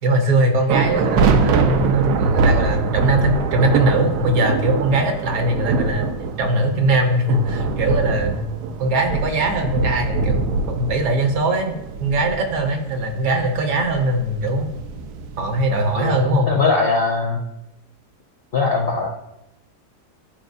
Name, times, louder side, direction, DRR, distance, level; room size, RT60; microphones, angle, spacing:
voice 1, 0.0-6.1 6.4-8.5 8.8-14.7 15.4-16.5, right 1 dB, 65° right, 4 dB, 1.2 m, -21 dB
sound 1, 0.7-16.0, right 4 dB, 80° right, 1.2 m, -24 dB
voice 2, 15.9-17.4 18.5-19.1, left 4 dB, 50° left, 0 dB, 0.7 m, -20 dB
10.5 x 4.8 x 2.6 m, 0.87 s
omnidirectional pair, 1.8 m